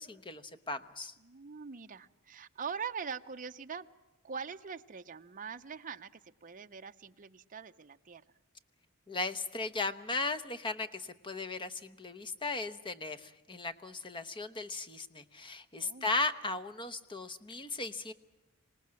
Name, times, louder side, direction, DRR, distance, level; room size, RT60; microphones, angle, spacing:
voice 1, 0.0-1.1 9.1-18.1, left 3 dB, 25° left, 11 dB, 1.0 m, -37 dB
voice 2, 1.2-3.9 4.2-8.2 15.8-16.1, right 6 dB, 40° right, 8 dB, 0.7 m, -43 dB
26.0 x 19.0 x 7.6 m, 1.0 s
head